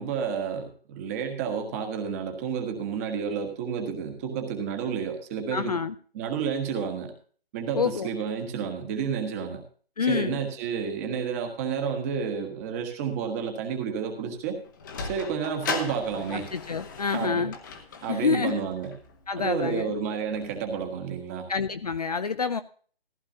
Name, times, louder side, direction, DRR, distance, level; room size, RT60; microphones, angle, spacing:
voice 1, 0.0-5.8 6.1-7.1 7.5-9.6 10.0-14.6 15.0-16.5 17.1-17.5 18.0-18.9 19.3-21.5, right 6 dB, 15° right, 4 dB, 1.4 m, -30 dB
voice 2, 5.5-5.9 7.7-8.1 10.0-10.4 16.3-17.5 18.1-18.6 19.3-19.9 21.5-22.6, left 5 dB, 40° left, 11 dB, 0.6 m, -27 dB
Sliding door, 14.4-20.9, left 4 dB, 20° left, 1.1 m, -39 dB
15.0 x 13.0 x 2.7 m, 0.43 s
figure-of-eight pair, 160°, 30 cm